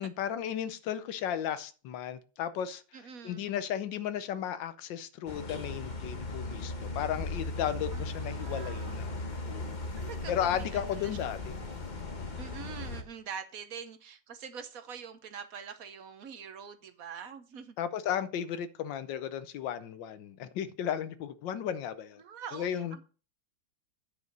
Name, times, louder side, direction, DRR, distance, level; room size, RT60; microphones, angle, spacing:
voice 1, 0.0-2.8 3.2-9.1 9.5-9.8 10.3-11.5 17.8-22.2 22.5-23.0, left 9 dB, 80° left, 1.5 m, -34 dB
voice 2, 2.9-3.5 7.9-9.0 10.0-11.2 11.5-11.6 12.4-17.8 22.2-23.0, right 7 dB, 55° right, 1.2 m, -45 dB
sound 1, 5.3-13.0, left 2 dB, 30° left, 1.1 m, -37 dB
9.4 x 5.0 x 6.6 m
omnidirectional pair, 2.0 m